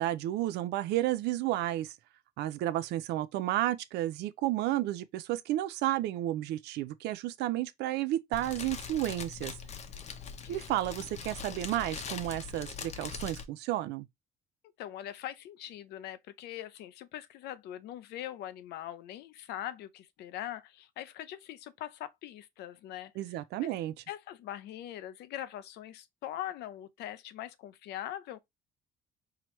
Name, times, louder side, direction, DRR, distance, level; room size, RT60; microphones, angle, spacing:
voice 1, 0.0-1.9 2.4-9.5 10.5-14.1 23.2-23.9, right 14 dB, 80° right, 0.5 m, -32 dB
Fire, 8.3-13.4, left 6 dB, 40° left, 0.8 m, -42 dB
voice 2, 14.8-23.1 23.6-23.7 24.1-28.4, left 12 dB, 80° left, 0.6 m, -42 dB
4.8 x 2.9 x 3.1 m
cardioid pair, 110°, 17 cm